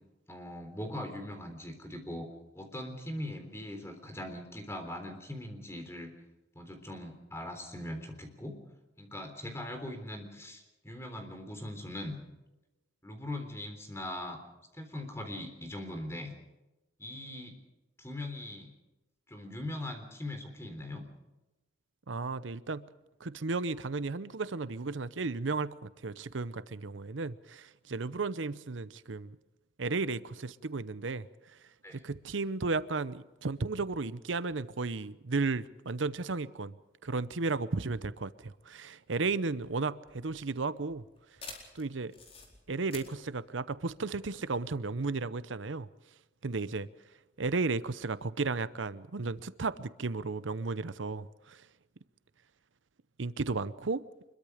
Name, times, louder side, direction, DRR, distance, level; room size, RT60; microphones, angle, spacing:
voice 1, 0.3-2.3 2.6-6.1 6.6-8.6 9.0-12.2 13.0-14.4 14.7-16.3 17.0-17.5 18.0-18.7 19.3-21.1 31.8-32.0, left 1 dB, 15° left, 3.7 m, -40 dB
voice 2, 22.1-22.9 23.2-29.4 29.8-31.6 31.9-36.7 37.0-41.1 41.7-42.1 42.7-45.9 46.4-46.9 47.4-51.7 53.2-54.0, right 3 dB, 90° right, 0.8 m, -34 dB
sound 1, 39.6-44.6, left 4 dB, 30° left, 4.3 m, -50 dB
25.0 x 22.5 x 5.1 m
head